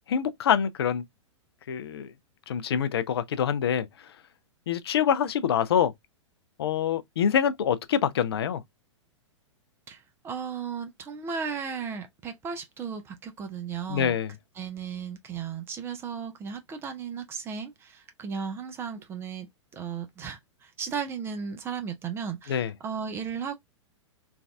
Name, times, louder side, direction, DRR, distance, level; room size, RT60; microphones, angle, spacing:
voice 1, 0.1-1.0 1.7-2.1 2.5-3.9 4.7-5.9 6.6-8.6 13.9-14.3 22.5-22.7, left 8 dB, 55° left, 0.4 m, -25 dB
voice 2, 9.9-14.2 14.6-23.6, right 6 dB, 15° right, 0.4 m, -35 dB
3.3 x 2.3 x 2.2 m
figure-of-eight pair, 105°, 16 cm